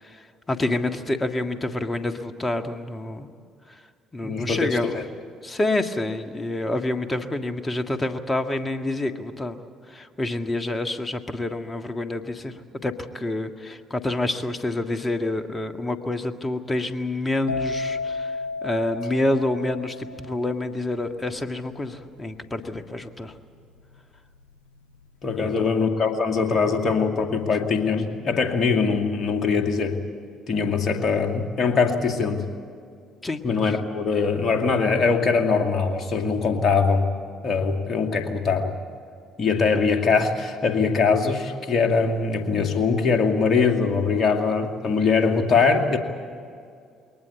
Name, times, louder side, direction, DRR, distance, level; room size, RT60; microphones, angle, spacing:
voice 1, 0.0-3.3 3.7-3.8 4.1-5.0 5.4-9.6 9.9-12.5 12.8-18.4 18.6-23.4 25.4-25.7 33.2-33.8, left 2 dB, 25° left, 7 dB, 1.8 m, -28 dB
voice 2, 4.2-5.0 25.2-30.0 30.5-32.5 33.4-37.1 37.4-38.7 39.4-46.0, left 5 dB, 45° left, 5 dB, 2.5 m, -22 dB
sound 1, 17.5-25.0 25.3-25.8, left 4 dB, 85° left, 1.2 m, -34 dB
22.0 x 19.0 x 8.4 m, 2.3 s
hypercardioid pair, 50°, 0 cm